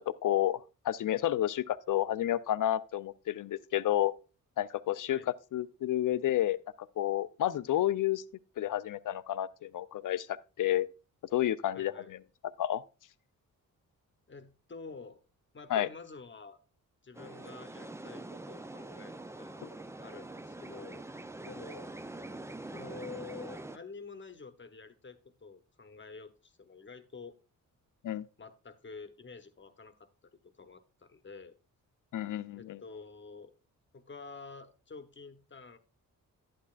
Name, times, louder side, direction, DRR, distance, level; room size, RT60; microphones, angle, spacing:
voice 1, 0.0-4.1 4.6-5.2 5.5-6.6 7.0-8.2 8.6-10.9 11.3-12.2 12.6-12.8 15.7-15.9 28.0-28.2 32.1-32.8, left 12 dB, 60° left, 0.5 m, -30 dB
voice 2, 11.7-12.1 14.3-15.2 15.5-16.6 17.0-21.0 21.4-21.9 22.6-27.4 28.4-30.3 30.6-31.5 32.5-33.5 33.9-35.8, left 4 dB, 30° left, 1.0 m, -49 dB
sound 1, 17.1-23.8, right 2 dB, 10° right, 0.4 m, -44 dB
11.0 x 8.5 x 2.4 m
cardioid pair, 65°, 35 cm